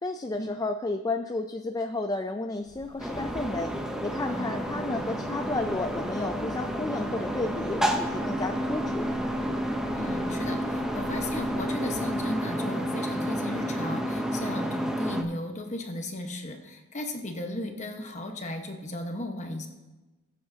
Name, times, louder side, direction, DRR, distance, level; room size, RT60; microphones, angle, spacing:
voice 1, 0.0-3.7 4.0-9.1, left 2 dB, 15° left, 6 dB, 0.3 m, -32 dB
sound 1, 2.6-12.4, equal, 30° right, 3.5 m, -48 dB
sound 2, 3.0-15.2, equal, 5° right, 0.7 m, -30 dB
voice 2, 9.9-19.7, left 1 dB, 35° left, 4 dB, 1.1 m, -35 dB
21.0 x 7.6 x 2.8 m, 1.1 s
head